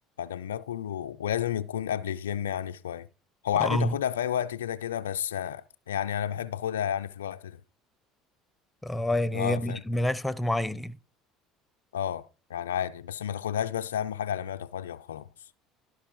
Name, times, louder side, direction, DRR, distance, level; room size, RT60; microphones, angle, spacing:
voice 1, 0.2-3.1 3.4-7.6 9.3-9.8 11.9-15.3, left 10 dB, 85° left, 0.3 m, -31 dB
voice 2, 3.6-4.0 8.8-11.0, left 1 dB, 10° left, 0.6 m, -28 dB
12.0 x 4.8 x 4.5 m
hypercardioid pair, 70°, 0 cm